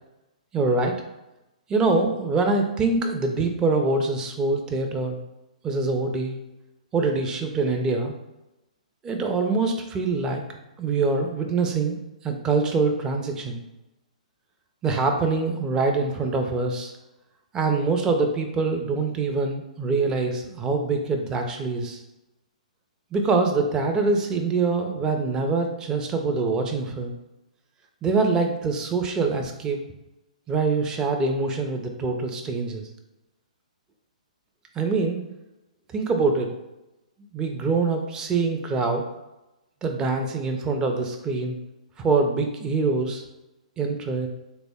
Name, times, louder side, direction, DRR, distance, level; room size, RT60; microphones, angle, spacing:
voice 1, 0.5-0.9 1.7-5.2 5.6-6.4 6.9-8.1 9.0-10.4 10.8-12.0 12.2-13.6 14.8-16.9 17.5-22.0 23.1-27.1 28.0-29.8 30.5-32.8 34.8-35.2 35.9-36.5 37.3-39.0 39.8-41.5 42.0-43.2 43.8-44.3, right 3 dB, 15° right, 4 dB, 0.5 m, -24 dB
3.7 x 2.1 x 3.5 m, 0.96 s
hypercardioid pair, 135°, 4 cm